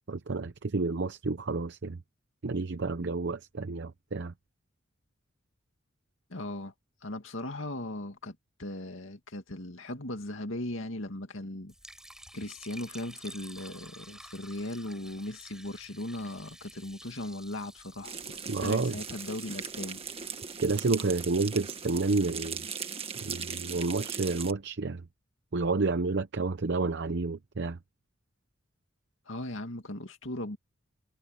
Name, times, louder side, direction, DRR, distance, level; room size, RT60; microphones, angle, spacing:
voice 1, 0.1-2.0 2.4-4.3 18.5-19.0 20.6-22.6 23.2-25.0 25.5-27.8, right 3 dB, 60° right, 0.7 m, -30 dB
voice 2, 6.3-6.7 7.0-11.7 12.3-18.3 18.6-20.0 29.3-30.6, left 1 dB, 75° left, 2.3 m, -38 dB
Liquid, 11.7-21.9, right 1 dB, 5° right, 6.4 m, -51 dB
sound 1, 18.0-24.5, right 6 dB, 30° right, 1.7 m, -39 dB
head